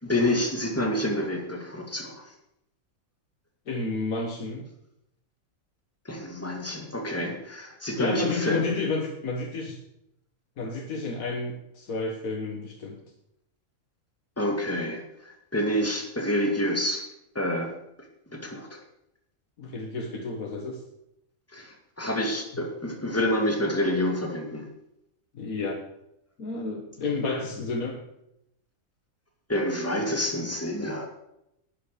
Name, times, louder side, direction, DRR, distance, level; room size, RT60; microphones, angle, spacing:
voice 1, 0.0-2.3 6.0-8.6 14.4-17.0 17.3-17.7 18.3-18.8 21.5-24.7 29.5-31.1, left 1 dB, 10° left, 2 dB, 2.4 m, -28 dB
voice 2, 3.7-4.7 8.0-9.8 10.6-13.0 19.6-20.8 25.3-25.8 26.4-28.0, left 3 dB, 90° left, 1 dB, 1.9 m, -31 dB
12.5 x 9.0 x 6.8 m, 0.81 s
omnidirectional pair, 1.4 m